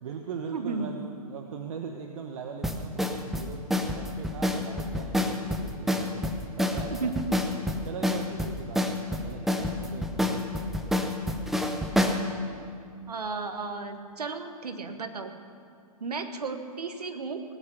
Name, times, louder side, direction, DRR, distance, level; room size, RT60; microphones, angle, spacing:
voice 1, 0.0-7.2 7.8-11.0, right 6 dB, 60° right, 3 dB, 1.1 m, -40 dB
voice 2, 0.5-0.9 6.9-7.2 13.1-15.3 16.0-17.4, right 4 dB, 85° right, 7 dB, 1.4 m, -34 dB
sound 1, 2.6-12.2, left 1 dB, ahead, 0.7 m, -28 dB
18.0 x 8.7 x 6.6 m, 2.2 s
hypercardioid pair, 130°, 20 cm